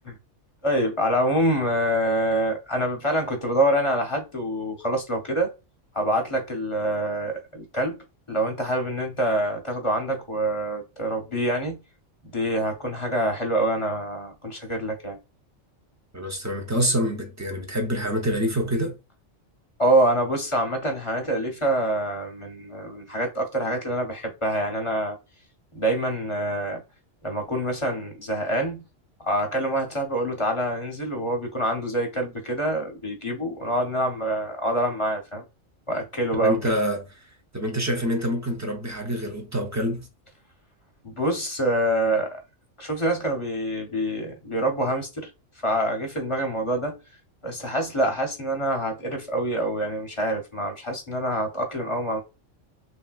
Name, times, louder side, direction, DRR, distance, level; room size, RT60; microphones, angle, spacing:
voice 1, 0.6-5.5 5.9-8.0 8.3-11.8 12.2-15.2 19.8-25.2 25.7-26.8 27.2-28.8 29.2-35.4 35.9-36.7 41.0-42.4 42.8-45.3 45.6-47.0 47.4-52.2, right 1 dB, 30° left, 0.6 m, -26 dB
voice 2, 16.1-19.0 36.3-40.1, equal, 25° right, 0.3 m, -26 dB
3.2 x 2.7 x 2.3 m
omnidirectional pair, 1.3 m